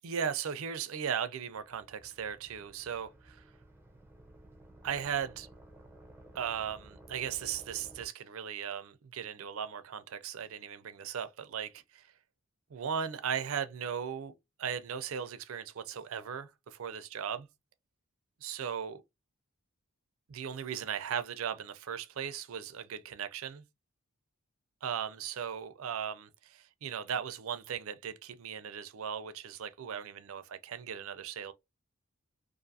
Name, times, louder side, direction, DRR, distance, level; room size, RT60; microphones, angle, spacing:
voice 1, 0.0-3.4 4.8-5.5 6.3-12.0 12.7-14.3 14.6-17.5 18.4-19.0 20.3-23.6 24.8-31.5, right 7 dB, 70° right, 0.4 m, -37 dB
sound 1, 1.5-8.1, right 1 dB, 10° right, 0.5 m, -55 dB
2.5 x 2.4 x 2.6 m
head